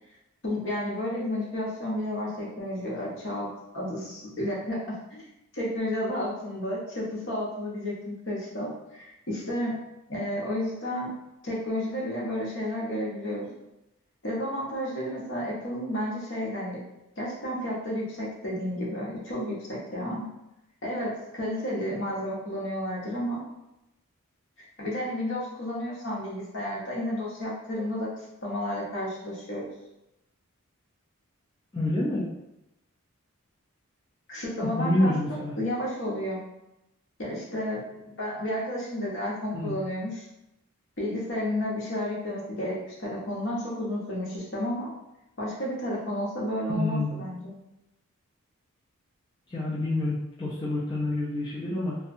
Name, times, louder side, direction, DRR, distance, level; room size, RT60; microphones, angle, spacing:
voice 1, 0.4-3.5 3.7-5.2 5.5-9.7 10.1-11.1 11.4-13.5 14.2-16.8 17.2-20.2 20.8-23.4 24.8-29.6 34.3-36.4 37.2-40.2 41.0-44.9 45.4-47.5, left 1 dB, 55° left, -5 dB, 0.8 m, -32 dB
voice 2, 31.7-32.3 34.6-35.5 39.5-39.8 46.7-47.2 49.5-52.0, left 1 dB, 20° left, -9 dB, 0.4 m, -28 dB
2.6 x 2.1 x 2.5 m, 0.89 s
head